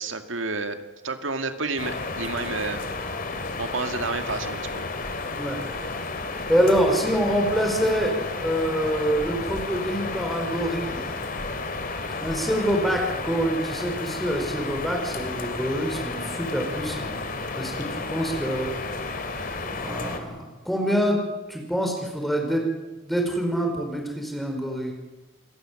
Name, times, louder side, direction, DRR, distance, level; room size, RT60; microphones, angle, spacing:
voice 1, 0.0-2.8 3.6-4.8, right 3 dB, 65° right, 7 dB, 2.1 m, -30 dB
sound 1, 1.8-20.2, left 3 dB, 45° left, 2.6 m, -32 dB
voice 2, 6.5-8.1 8.4-11.1 12.2-17.1 17.5-18.7 19.7-21.2 21.5-22.7 23.0-24.9, equal, ahead, 2 dB, 5.0 m, -25 dB
28.5 x 18.5 x 7.6 m, 1.1 s
head